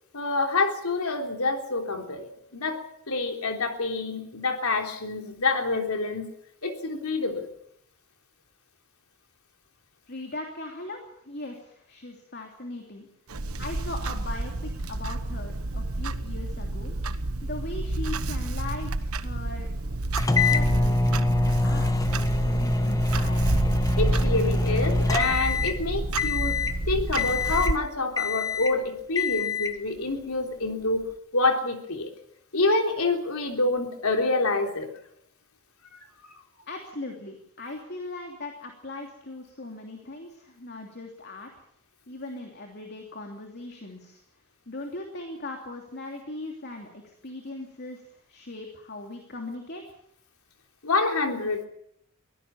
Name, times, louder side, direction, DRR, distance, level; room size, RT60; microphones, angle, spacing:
voice 1, 0.1-6.3 6.6-7.5 24.0-26.6 26.9-31.0 31.3-32.1 32.5-34.9 50.8-51.7, left 3 dB, 85° left, 4 dB, 3.5 m, -27 dB
voice 2, 10.1-13.1 13.6-17.0 17.4-19.7 20.4-23.6 36.7-41.5 42.1-44.2 44.7-49.8, left 2 dB, 50° left, 2 dB, 2.9 m, -39 dB
Clock, 13.3-27.8, right 2 dB, 80° right, 1.2 m, -29 dB
sound 1, 20.2-25.8 26.2-26.8 27.2-27.8 28.2-28.8 29.2-29.8, left 3 dB, 15° left, 1.2 m, -25 dB
24.0 x 17.0 x 7.2 m, 0.71 s
head